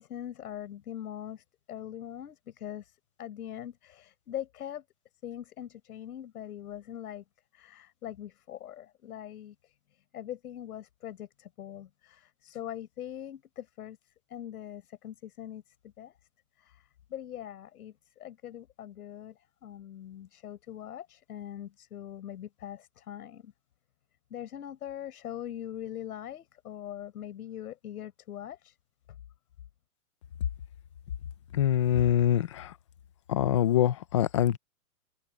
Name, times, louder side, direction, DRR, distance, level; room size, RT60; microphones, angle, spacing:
voice 1, 0.0-4.8 5.2-7.2 7.5-9.8 10.1-14.0 14.3-15.6 16.0-16.1 16.6-23.5 24.3-28.8, left 11 dB, 75° left, 6.4 m, -42 dB
voice 2, 31.5-32.7 33.3-34.6, left 11 dB, 20° left, 0.4 m, -24 dB
open air
supercardioid pair, 165°, 45 cm